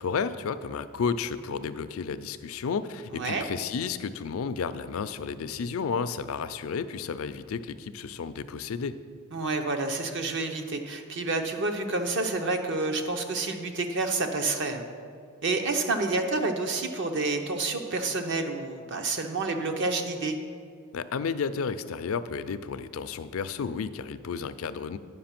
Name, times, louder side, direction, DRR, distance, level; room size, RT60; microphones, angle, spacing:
voice 1, 0.0-9.0 20.9-25.0, left 5 dB, 75° left, 12 dB, 0.4 m, -32 dB
voice 2, 3.1-3.4 9.3-14.9 15.4-20.4, right 3 dB, 60° right, 5 dB, 0.8 m, -29 dB
9.5 x 5.5 x 5.9 m, 2.1 s
head